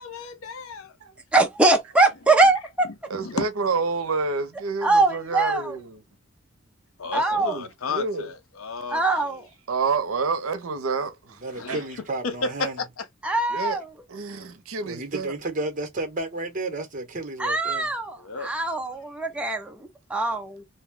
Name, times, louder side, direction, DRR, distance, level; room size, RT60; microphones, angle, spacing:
voice 1, 0.0-0.9 2.8-3.5 7.0-9.4 11.5-11.8 12.2-13.0 18.2-18.5, left 4 dB, 75° left, 0.6 m, -33 dB
voice 2, 1.3-2.9 4.8-5.8 7.1-7.6 8.9-9.4 13.2-13.9 17.4-20.6, right 2 dB, 5° right, 0.4 m, -22 dB
voice 3, 3.1-6.0 7.3-8.3 9.7-11.4 11.7-11.8 13.5-13.8 14.1-15.4, right 4 dB, 80° right, 0.6 m, -28 dB
voice 4, 11.3-12.8 14.8-17.9, right 2 dB, 35° right, 0.9 m, -32 dB
2.6 x 2.2 x 3.5 m
head